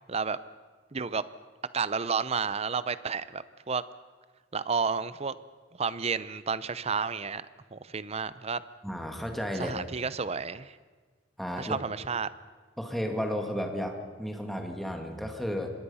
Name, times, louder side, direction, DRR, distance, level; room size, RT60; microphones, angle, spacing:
voice 1, 0.9-1.2 1.7-3.8 4.5-5.3 5.8-7.5 7.7-8.6 9.6-10.7 11.6-12.3, right 5 dB, 35° right, 16 dB, 0.7 m, -31 dB
voice 2, 8.8-9.8 11.4-11.8 12.8-15.7, equal, ahead, 3 dB, 2.2 m, -33 dB
25.5 x 20.5 x 5.7 m, 1.4 s
head